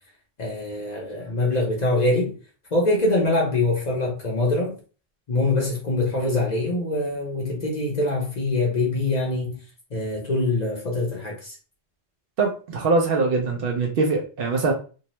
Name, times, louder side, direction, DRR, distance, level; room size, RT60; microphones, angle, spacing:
voice 1, 0.4-2.3 2.7-4.7 5.3-9.6 9.9-11.5, left 2 dB, 45° left, 0.7 m, -24 dB
voice 2, 12.4-14.7, right 3 dB, 65° right, 0.7 m, -22 dB
2.6 x 2.0 x 2.9 m
omnidirectional pair, 1.2 m